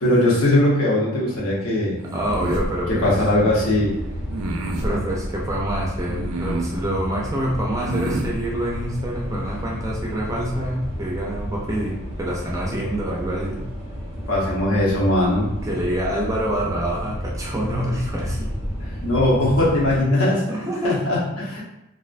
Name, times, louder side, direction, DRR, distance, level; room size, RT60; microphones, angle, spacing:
voice 1, 0.0-2.0 2.9-3.9 14.3-15.5 19.0-20.4 20.8-21.6, left 1 dB, 80° left, -5 dB, 0.8 m, -19 dB
sound 1, 2.0-2.7 4.3-4.9 6.1-6.8 7.7-8.3, right 2 dB, 85° right, 0.4 m, -28 dB
voice 2, 2.1-3.1 4.8-13.6 15.6-18.5 20.5-21.0, right 1 dB, 15° right, -3 dB, 0.3 m, -26 dB
sound 2, 2.2-20.1, equal, 30° left, 0.6 m, -32 dB
2.4 x 2.1 x 2.4 m, 0.90 s
head